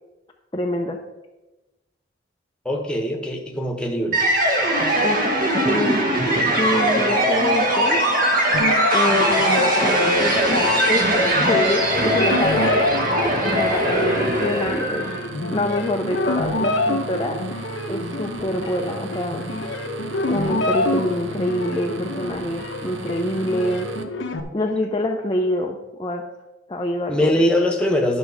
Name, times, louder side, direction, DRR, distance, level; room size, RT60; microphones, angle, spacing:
voice 1, 0.5-1.0 5.0-5.3 5.6-6.0 6.6-8.0 8.9-12.7 13.4-15.1 15.5-17.4 17.9-19.5 20.3-23.9 24.5-26.2 26.7-27.5, left 1 dB, 25° left, 1 dB, 0.6 m, -26 dB
voice 2, 2.6-4.2 13.8-14.4 27.1-28.2, left 1 dB, 5° left, 2 dB, 1.2 m, -22 dB
sound 1, 4.1-15.3, equal, 50° right, 1.5 m, -20 dB
sound 2, 8.5-24.4, left 2 dB, 90° left, 1.0 m, -28 dB
sound 3, 11.8-24.0, right 3 dB, 80° right, 0.8 m, -36 dB
11.0 x 6.1 x 4.8 m, 1.1 s
head